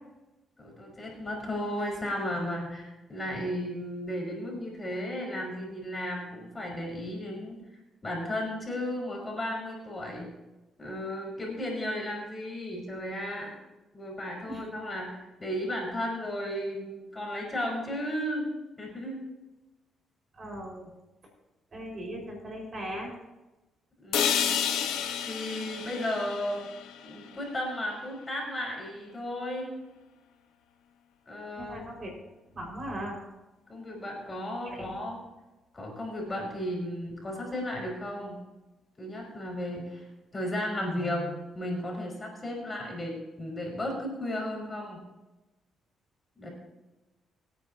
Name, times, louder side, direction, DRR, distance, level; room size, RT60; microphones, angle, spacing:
voice 1, 0.6-7.6 8.0-10.3 10.8-13.6 13.9-18.5 18.8-19.2 24.0-24.8 25.2-26.6 27.0-29.8 31.3-31.9 33.7-35.2 35.7-38.4 39.0-40.1 40.3-45.0 46.4-46.5, left 1 dB, 25° left, -2 dB, 5.4 m, -34 dB
voice 2, 20.3-20.9 21.7-23.1 31.5-32.1 32.5-33.2 34.7-34.9, equal, 40° right, -1 dB, 5.3 m, -38 dB
sound 1, 24.1-28.1, left 8 dB, 90° left, 1.2 m, -31 dB
24.0 x 9.4 x 2.9 m, 1.1 s
cardioid pair, 90°, 0 cm